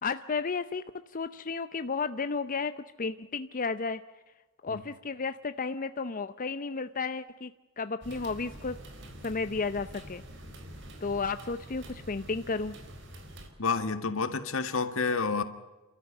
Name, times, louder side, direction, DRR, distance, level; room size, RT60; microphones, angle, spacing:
voice 1, 0.0-0.8 1.1-4.0 4.6-8.8 9.2-10.2 11.0-12.8, left 4 dB, 40° left, 11 dB, 0.7 m, -33 dB
sound 1, 8.0-13.5, right 1 dB, 60° right, 4.2 m, -46 dB
voice 2, 13.6-15.4, left 4 dB, 75° left, 10 dB, 1.8 m, -29 dB
29.5 x 13.5 x 9.8 m, 1.2 s
head